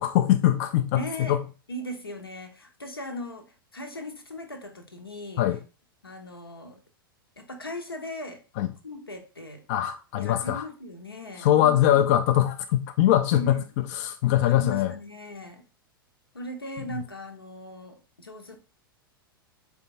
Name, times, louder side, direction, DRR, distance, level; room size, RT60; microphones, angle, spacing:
voice 1, 0.0-1.4 5.4-5.6 8.6-8.7 9.7-10.6 11.4-14.9, left 12 dB, 40° left, 0.4 m, -22 dB
voice 2, 0.9-1.4 1.7-5.4 6.0-6.8 7.4-8.4 8.8-9.6 10.1-12.1 13.3-13.7 14.4-15.6 16.3-18.6, left 1 dB, 80° left, 0.8 m, -38 dB
4.4 x 3.5 x 2.6 m
figure-of-eight pair, 95°, 12 cm